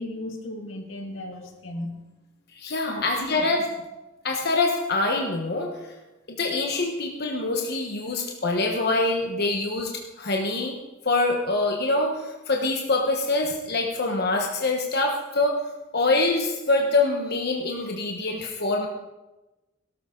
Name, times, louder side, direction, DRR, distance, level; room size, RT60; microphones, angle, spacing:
voice 1, 0.0-1.9 2.8-3.5, left 1 dB, 85° left, 3 dB, 2.1 m, -35 dB
voice 2, 2.5-3.7 4.2-5.7 6.3-10.8 11.0-15.6 15.9-18.9, left 2 dB, 55° left, 1 dB, 1.2 m, -25 dB
18.0 x 12.5 x 3.9 m, 1.1 s
head